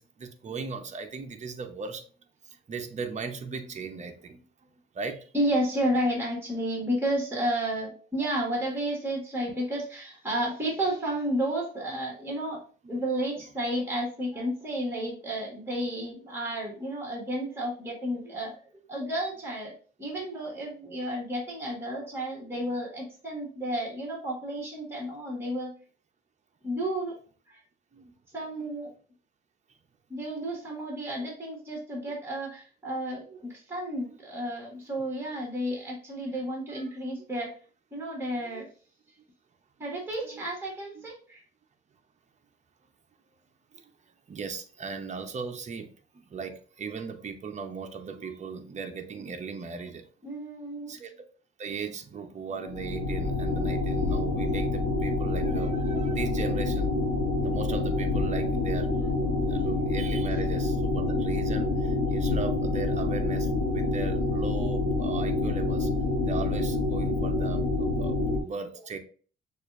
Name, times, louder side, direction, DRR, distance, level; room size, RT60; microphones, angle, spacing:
voice 1, 0.0-2.0 2.4-5.3 13.4-13.5 27.9-28.1 33.3-33.4 36.7-37.0 38.3-38.6 40.2-40.4 40.9-41.1 43.7-43.9 44.3-45.9 46.3-50.1 50.9-51.1 51.6-57.1 57.4-58.9 59.5-65.9 66.2-69.0, right 5 dB, 35° right, 5 dB, 0.7 m, -38 dB
voice 2, 5.3-12.6 12.9-18.5 18.9-19.7 20.0-25.7 26.6-27.2 27.5-27.6 28.3-28.9 30.1-37.5 37.9-38.7 39.8-41.4 50.2-51.0 59.3-59.6 67.5-67.6, right 1 dB, 10° right, -2 dB, 1.8 m, -32 dB
sound 1, 52.5-68.4, left 2 dB, 70° left, 0.9 m, -27 dB
6.5 x 2.5 x 2.5 m, 0.40 s
cardioid pair, 90°, 20 cm